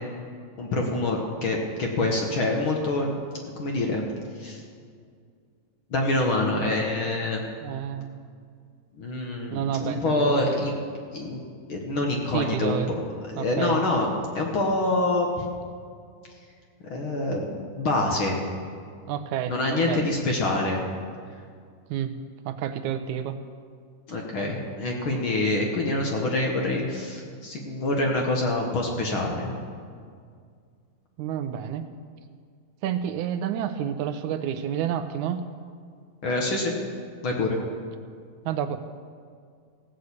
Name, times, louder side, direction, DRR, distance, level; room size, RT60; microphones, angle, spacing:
voice 1, 0.6-3.2 3.6-4.0 4.3-4.6 5.9-7.4 9.0-10.8 11.1-11.4 11.7-13.0 13.2-14.1 14.3-15.5 16.9-18.4 19.5-20.8 24.1-29.5 36.2-36.7 37.2-37.6, left 2 dB, 55° left, 0 dB, 1.6 m, -26 dB
voice 2, 7.6-8.2 9.5-10.7 12.1-12.9 13.4-13.8 19.1-19.5 19.9-20.1 21.9-22.1 22.5-23.4 31.2-31.9 32.8-35.4 38.5-38.8, right 9 dB, 80° right, 9 dB, 2.0 m, -29 dB
16.5 x 6.4 x 8.3 m, 2.1 s
omnidirectional pair, 3.5 m